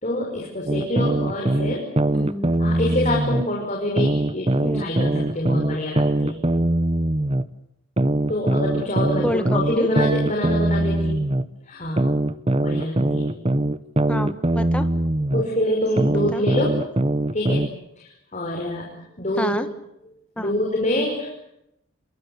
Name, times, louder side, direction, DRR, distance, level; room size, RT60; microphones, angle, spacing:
voice 1, 0.0-1.9 2.6-6.4 8.3-11.3 11.7-12.1 12.6-13.3 15.3-16.9 17.3-18.9 19.2-19.6 20.4-21.3, left 1 dB, 35° left, 0 dB, 5.5 m, -26 dB
sound 1, 0.7-3.4 4.0-7.4 8.0-11.4 12.0-15.4 16.0-17.7, right 1 dB, 30° right, 0.9 m, -22 dB
voice 2, 2.1-2.5 4.6-4.9 9.2-9.9 14.1-14.9 16.1-16.5 19.4-19.7 20.4-20.6, left 1 dB, 5° left, 9 dB, 1.6 m, -28 dB
27.5 x 23.5 x 8.1 m, 0.83 s
head